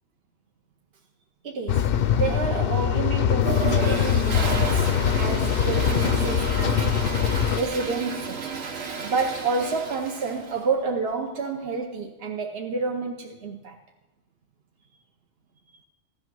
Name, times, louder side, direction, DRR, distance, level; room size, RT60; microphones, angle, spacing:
voice 1, 1.4-6.9 7.5-8.5 9.0-13.8 15.7-15.8, right 4 dB, 55° right, 1.1 m, -29 dB
sound 1, 1.7-7.6, left 9 dB, 55° left, 0.7 m, -22 dB
Toilet flush, 3.4-10.6, right 5 dB, 80° right, 1.6 m, -32 dB
15.0 x 11.0 x 6.2 m
omnidirectional pair, 1.3 m